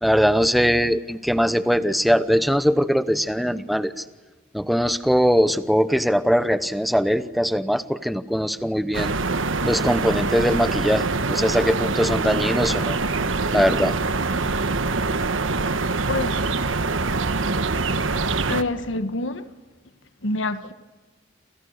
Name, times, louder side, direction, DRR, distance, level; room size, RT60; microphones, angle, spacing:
voice 1, 0.0-4.0 4.5-9.1 9.7-13.0 13.5-13.9, equal, ahead, 0.9 m, -21 dB
sound 1, 8.9-18.6, right 3 dB, 85° right, 1.3 m, -24 dB
voice 2, 16.1-16.4 18.5-19.5 20.2-20.7, left 2 dB, 75° left, 1.5 m, -26 dB
29.0 x 28.0 x 6.6 m
head